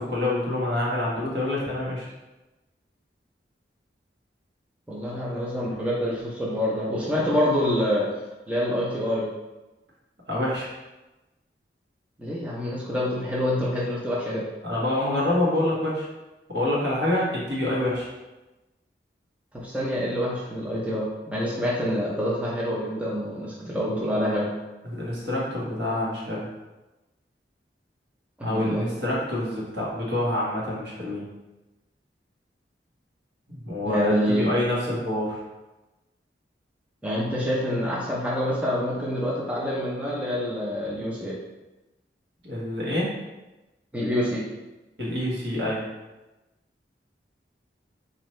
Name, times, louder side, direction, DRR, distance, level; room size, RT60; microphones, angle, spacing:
voice 1, 0.0-2.0 10.3-10.7 14.6-16.1 16.5-18.1 23.6-24.4 24.8-26.5 28.4-31.2 33.5-35.4 42.4-43.1 45.0-45.8, left 1 dB, 70° right, -6 dB, 1.3 m, -27 dB
voice 2, 4.9-8.1 8.5-9.3 12.2-14.5 19.5-24.5 28.4-28.8 33.8-34.5 37.0-41.3 43.9-44.4, equal, 10° right, -5 dB, 0.5 m, -26 dB
4.3 x 2.7 x 3.1 m, 1.1 s
head